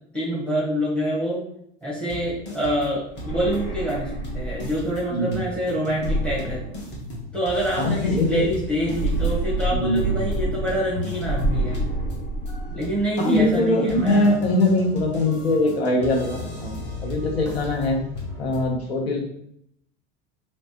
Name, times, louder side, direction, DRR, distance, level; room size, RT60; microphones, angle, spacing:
voice 1, 0.1-1.4 1.8-6.6 7.3-11.8 12.7-14.3, equal, 5° left, -7 dB, 1.3 m, -26 dB
sound 1, 2.1-2.9 3.2-3.6 3.9-4.0 4.2-18.6, left 2 dB, 35° left, 1.4 m, -36 dB
sound 2, 3.1-5.0 5.9-7.4 8.7-10.9 11.2-12.9, right 2 dB, 70° left, 1.5 m, -28 dB
voice 2, 7.8-8.5 9.7-10.1 13.2-18.0 18.4-19.2, left 1 dB, 85° left, 2 dB, 0.9 m, -22 dB
3.1 x 3.1 x 2.9 m, 0.72 s
hypercardioid pair, 80°, 30 cm